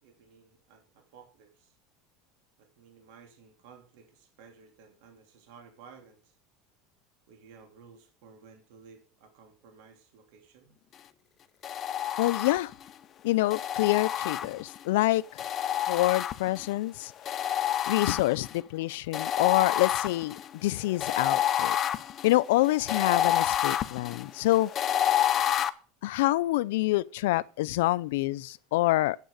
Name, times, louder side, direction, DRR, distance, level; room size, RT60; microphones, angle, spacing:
voice 1, 0.0-1.8 2.6-6.3 7.3-10.7, right 6 dB, 70° right, 2.9 m, -55 dB
sound 1, 11.6-12.9 13.5-14.8 15.4-16.7 17.3-18.6 19.1-25.7, left 10 dB, 35° left, 0.6 m, -29 dB
voice 2, 12.2-12.7 13.2-15.2 15.9-17.4 17.9-21.8 22.2-24.7 26.0-29.2, left 17 dB, 85° left, 0.5 m, -26 dB
9.2 x 8.0 x 6.5 m
supercardioid pair, 145°, 0 cm